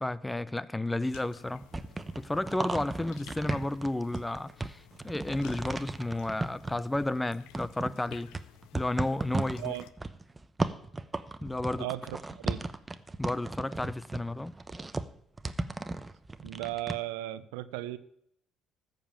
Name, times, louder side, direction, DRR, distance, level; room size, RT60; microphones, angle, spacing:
voice 1, 0.0-1.7 2.2-8.3 8.7-9.7 11.4-11.9 13.2-14.5, left 2 dB, 10° left, 0.6 m, -32 dB
sound 1, 1.0-9.9, left 12 dB, 80° left, 0.6 m, -54 dB
sound 2, 1.5-7.2 7.5-16.9, right 2 dB, 20° right, 0.9 m, -35 dB
voice 2, 11.8-12.6 16.4-18.0, right 16 dB, 85° right, 0.7 m, -36 dB
14.0 x 5.4 x 8.8 m
supercardioid pair, 70°, 0 cm